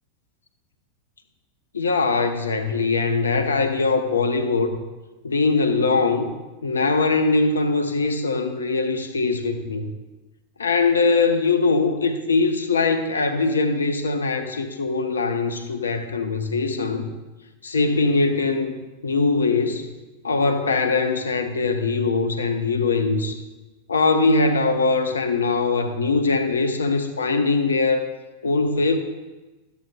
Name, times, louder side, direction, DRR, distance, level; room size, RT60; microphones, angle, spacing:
voice 1, 1.7-4.8 5.2-6.3 6.6-9.9 10.6-17.1 17.6-19.9 20.2-23.4 23.9-28.1 28.4-29.0, left 3 dB, 70° left, 8 dB, 0.7 m, -21 dB
12.0 x 8.2 x 2.4 m, 1.2 s
figure-of-eight pair, 90°, 0 cm